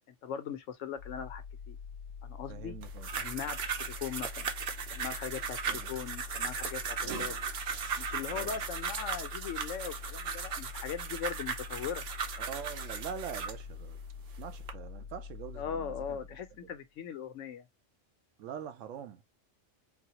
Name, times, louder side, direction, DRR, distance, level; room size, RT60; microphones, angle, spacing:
voice 1, 0.1-1.8 2.2-2.8 3.2-4.5 4.9-7.4 8.0-12.0 15.6-17.7, left 8 dB, 80° left, 1.0 m, -40 dB
sound 1, 1.0-16.7, left 6 dB, 55° left, 0.6 m, -45 dB
voice 2, 2.5-3.1 5.7-5.9 7.0-7.3 8.3-8.5 12.4-14.0 14.4-16.2 16.6-16.7 18.4-19.2, right 8 dB, 85° right, 1.0 m, -44 dB
sound 2, 2.8-13.6 14.2-14.7, right 6 dB, 60° right, 0.9 m, -37 dB
4.0 x 2.0 x 2.8 m
omnidirectional pair, 1.3 m